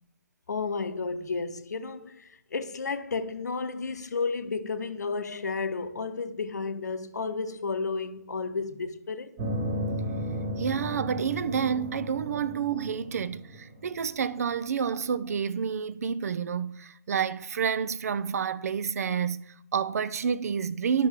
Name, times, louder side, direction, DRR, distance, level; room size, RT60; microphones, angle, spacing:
voice 1, 0.5-9.3, left 4 dB, 75° left, 0.8 m, -32 dB
sound 1, 9.4-14.3, equal, 30° right, 1.5 m, -34 dB
voice 2, 10.6-21.1, right 7 dB, 60° right, 0.5 m, -29 dB
11.0 x 5.9 x 3.5 m
figure-of-eight pair, 140°, 9 cm